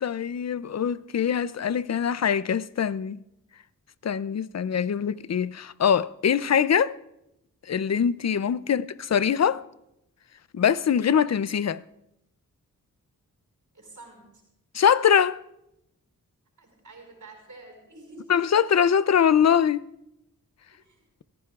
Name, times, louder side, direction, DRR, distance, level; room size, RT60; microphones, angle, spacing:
voice 1, 0.0-3.2 4.0-6.9 7.7-9.6 10.5-11.8 14.7-15.4 18.3-19.9, left 8 dB, 50° left, 0.5 m, -23 dB
voice 2, 13.7-14.3 16.6-18.4 20.8-21.0, right 2 dB, 60° right, 5.0 m, -48 dB
27.5 x 14.5 x 2.4 m
wide cardioid pair, 100°, 34 cm